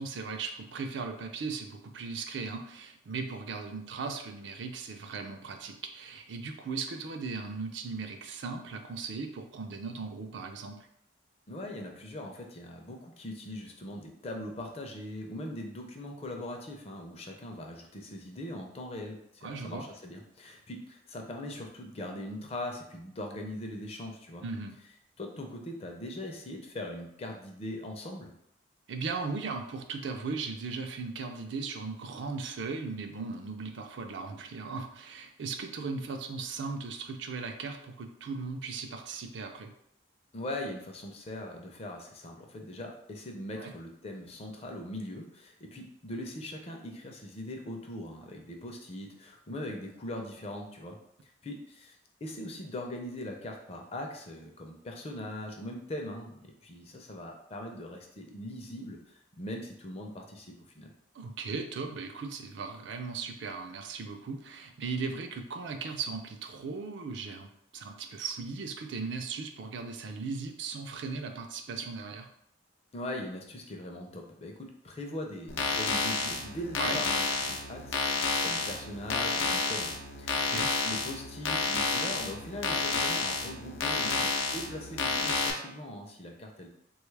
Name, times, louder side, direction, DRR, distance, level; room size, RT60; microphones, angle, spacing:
voice 1, 0.0-10.8 19.4-19.9 24.4-24.7 28.9-39.7 43.6-43.7 61.1-72.3 76.8-77.0 80.5-80.7, right 4 dB, 65° right, 5 dB, 0.4 m, -37 dB
voice 2, 11.5-24.4 25.2-28.3 40.3-51.0 51.4-60.9 72.9-86.7, left 1 dB, 30° left, 2 dB, 0.4 m, -41 dB
sound 1, 75.5-85.5, left 4 dB, 85° left, 0.5 m, -30 dB
3.3 x 2.3 x 3.2 m, 0.74 s
head